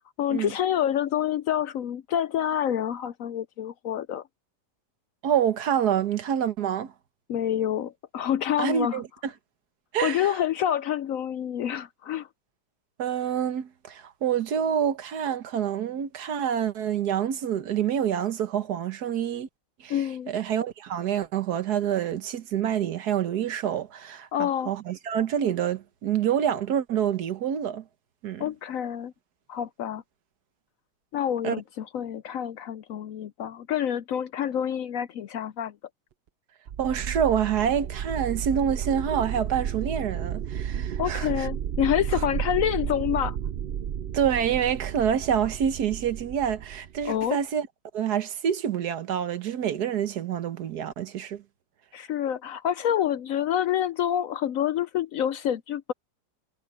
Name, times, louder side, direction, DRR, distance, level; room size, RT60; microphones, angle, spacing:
voice 1, 0.2-4.2 7.3-9.0 10.0-12.3 19.9-20.3 24.3-24.7 28.4-29.1 29.5-30.0 31.1-35.8 41.0-43.4 47.0-47.4 51.9-55.9, left 10 dB, 70° left, 0.8 m, -27 dB
voice 2, 5.2-6.9 8.6-9.0 9.9-10.3 13.0-19.5 19.8-20.0 20.3-27.8 28.2-28.5 31.4-31.6 36.8-41.5 44.1-47.7 47.9-51.4, right 9 dB, 65° right, 1.6 m, -27 dB
sound 1, 36.7-47.3, right 9 dB, 85° right, 0.5 m, -32 dB
omnidirectional pair, 1.9 m